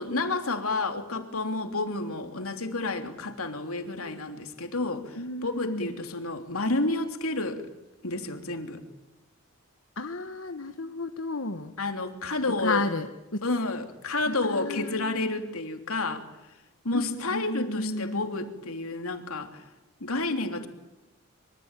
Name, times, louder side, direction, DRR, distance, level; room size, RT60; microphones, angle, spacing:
voice 1, 0.0-7.6 8.0-8.8 11.8-12.8 13.4-16.3 16.8-19.6 20.0-20.7, left 2 dB, 80° left, 5 dB, 3.3 m, -30 dB
voice 2, 5.1-5.9 10.0-11.7 12.6-13.4 14.3-15.3 16.9-18.3, left 2 dB, 65° left, 7 dB, 1.3 m, -33 dB
25.5 x 24.5 x 9.1 m, 0.97 s
head